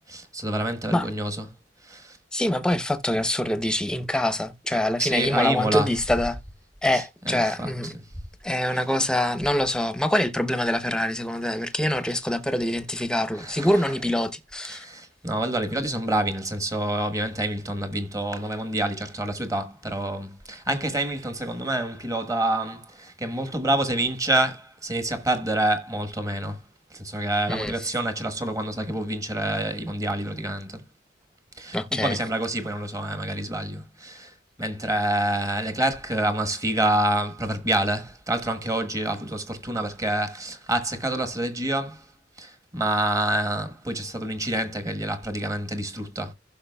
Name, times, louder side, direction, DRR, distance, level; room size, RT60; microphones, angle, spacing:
voice 1, 0.0-1.4 1.8-2.2 5.0-5.9 6.9-7.7 13.4-13.7 14.7-26.6 26.9-30.8 31.6-34.3 34.6-42.0 42.4-46.3, right 1 dB, 20° right, 1.3 m, -27 dB
voice 2, 2.3-6.4 6.8-7.9 8.4-14.8 27.5-27.9 31.7-32.2, left 1 dB, 5° left, 0.7 m, -25 dB
15.5 x 6.0 x 2.3 m
head